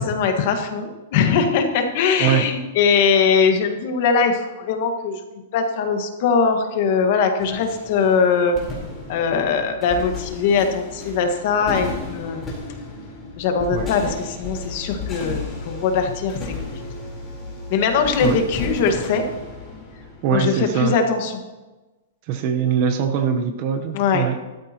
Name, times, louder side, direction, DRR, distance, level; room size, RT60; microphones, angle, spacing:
voice 1, 0.0-5.2 5.5-8.6 9.1-12.5 13.4-16.4 17.7-19.2 20.3-21.3 23.9-24.4, left 5 dB, 45° left, 5 dB, 1.6 m, -21 dB
sound 1, 7.4-20.9, left 3 dB, 15° left, 3.9 m, -34 dB
voice 2, 20.2-21.0 22.3-24.4, right 7 dB, 35° right, 7 dB, 0.9 m, -22 dB
16.0 x 13.0 x 3.0 m, 1.1 s
supercardioid pair, 165°, 0 cm